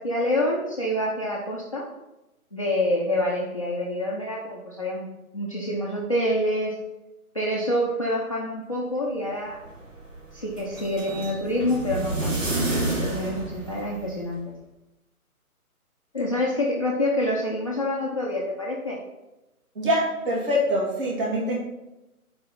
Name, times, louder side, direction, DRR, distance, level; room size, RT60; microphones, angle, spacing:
voice 1, 0.0-1.9 2.5-5.1 5.3-6.7 7.3-9.6 10.3-12.4 13.0-14.5 16.1-19.0, left 1 dB, 25° left, -4 dB, 0.6 m, -27 dB
sound 1, 9.3-14.4, right 2 dB, 60° right, 2.0 m, -30 dB
voice 2, 19.7-21.6, equal, 35° right, -5 dB, 2.8 m, -24 dB
7.1 x 4.8 x 5.5 m, 0.98 s
hypercardioid pair, 160°, 44 cm